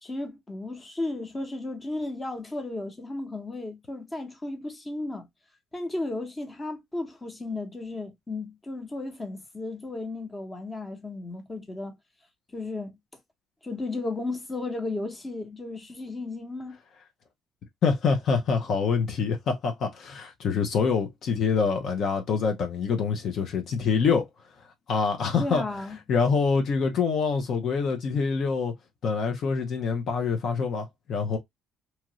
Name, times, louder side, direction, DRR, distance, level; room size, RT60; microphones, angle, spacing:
voice 1, 0.0-5.3 5.7-11.9 12.5-13.0 13.6-16.8 25.4-26.0, left 2 dB, 20° left, 0.9 m, -34 dB
voice 2, 17.8-24.3 24.9-25.6 26.1-28.7 29.0-31.4, left 5 dB, 60° left, 0.6 m, -25 dB
2.9 x 2.4 x 2.9 m
cardioid pair, 95°, 0 cm